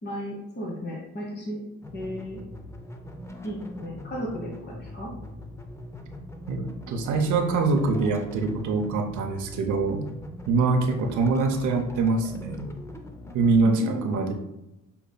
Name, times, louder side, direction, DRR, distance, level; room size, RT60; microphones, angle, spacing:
voice 1, 0.0-1.6 1.9-2.4 3.4-5.1 13.7-14.0, equal, 35° left, -2 dB, 1.1 m, -34 dB
sound 1, 1.8-13.6, left 1 dB, 10° left, 0.5 m, -42 dB
voice 2, 6.5-10.0 10.5-12.7 13.3-14.3, right 3 dB, 75° right, 3 dB, 0.7 m, -24 dB
6.8 x 2.9 x 2.2 m, 0.91 s
cardioid pair, 90°, 30 cm